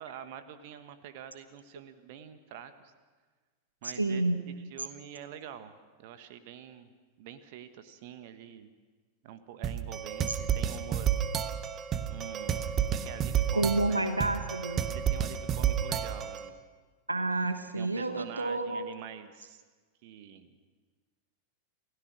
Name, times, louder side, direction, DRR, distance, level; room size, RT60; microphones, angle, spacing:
voice 1, 0.0-2.9 3.8-5.7 6.0-6.9 7.2-8.7 9.2-11.2 12.1-14.1 14.9-16.6 17.8-19.6 20.0-20.6, right 9 dB, 50° right, 11 dB, 1.4 m, -46 dB
voice 2, 3.8-4.5 13.5-14.9 17.1-18.9, right 2 dB, 80° right, 9 dB, 1.1 m, -29 dB
sound 1, 9.6-16.5, right 9 dB, 30° right, 1.1 m, -31 dB
28.5 x 16.5 x 6.2 m, 1.4 s
figure-of-eight pair, 90°, 0 cm